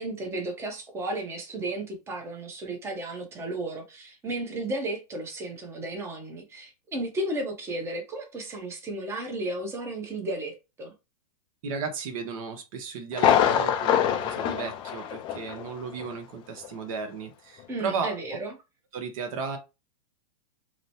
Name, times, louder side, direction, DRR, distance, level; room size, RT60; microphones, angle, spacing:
voice 1, 0.0-10.9 17.7-18.5, right 2 dB, 15° right, 0.7 m, -34 dB
voice 2, 11.6-18.2 18.9-19.6, right 5 dB, 60° right, 0.9 m, -34 dB
Thunder, 13.1-15.7 16.0-16.1 16.6-16.7, left 9 dB, 25° left, 0.4 m, -24 dB
2.9 x 2.1 x 2.7 m
hypercardioid pair, 130°, 20 cm